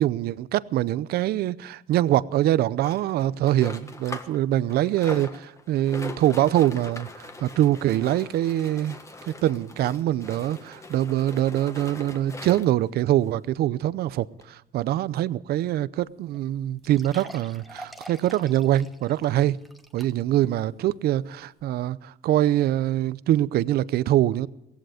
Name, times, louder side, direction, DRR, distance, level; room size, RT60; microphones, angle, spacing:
voice 1, 0.0-9.0 9.3-19.6 19.9-24.5, right 13 dB, 70° right, 0.6 m, -24 dB
sound 1, 2.8-4.4 4.7-12.9 13.5-13.6 13.8-13.9 14.4-14.5, left 2 dB, 15° left, 1.6 m, -41 dB
sound 2, 16.0-16.1 16.3-16.4 16.8-20.4 20.9-21.0 21.6-21.7, right 1 dB, ahead, 1.3 m, -46 dB
18.0 x 15.5 x 5.0 m
cardioid pair, 110°, 17 cm